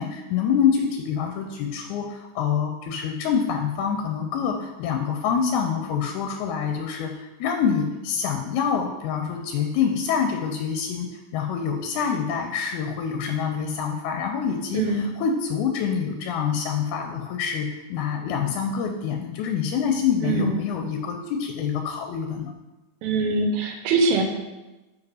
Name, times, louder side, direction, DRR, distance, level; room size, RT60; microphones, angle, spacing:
voice 1, 0.0-22.5, left 7 dB, 80° left, 4 dB, 1.9 m, -26 dB
voice 2, 14.7-15.1 20.2-20.6 23.0-24.2, right 3 dB, 75° right, 4 dB, 1.9 m, -23 dB
4.9 x 4.9 x 4.8 m, 1.1 s
omnidirectional pair, 3.6 m